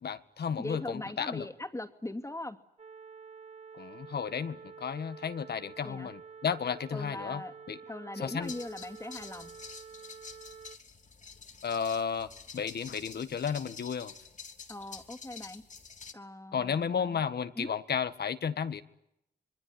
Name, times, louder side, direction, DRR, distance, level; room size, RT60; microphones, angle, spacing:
voice 1, 0.0-1.5 3.7-7.4 7.7-7.8 8.2-8.5 11.6-14.1 16.5-18.8, left 7 dB, 70° left, 1.7 m, -33 dB
voice 2, 0.6-2.6 5.8-6.1 6.9-7.5 7.9-9.5 14.7-15.6 16.1-17.2 17.6-17.8, left 2 dB, 15° left, 2.6 m, -40 dB
sound 1, 2.8-10.8, right 6 dB, 40° right, 1.8 m, -49 dB
sound 2, 8.4-16.1, left 5 dB, 45° left, 3.2 m, -48 dB
26.5 x 22.0 x 9.9 m
cardioid pair, 60°, 17 cm